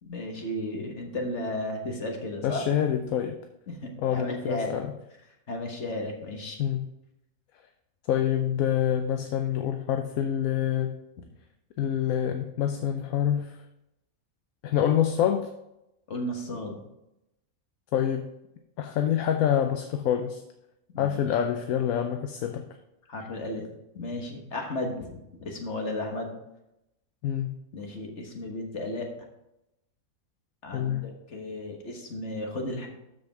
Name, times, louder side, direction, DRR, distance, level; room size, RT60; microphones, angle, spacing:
voice 1, 0.0-2.6 3.7-4.8 5.5-6.6 16.1-16.8 20.9-21.1 23.1-23.7 23.9-26.3 27.7-29.1 30.6-32.9, left 1 dB, 55° left, 2 dB, 1.6 m, -34 dB
voice 2, 2.4-3.3 4.0-4.9 6.6-6.9 8.1-11.0 11.8-13.5 14.6-15.5 17.9-18.3 18.8-20.4 21.0-22.7 27.2-27.6 30.7-31.1, left 9 dB, 80° left, 6 dB, 1.1 m, -26 dB
13.0 x 5.1 x 3.5 m, 0.87 s
omnidirectional pair, 1.5 m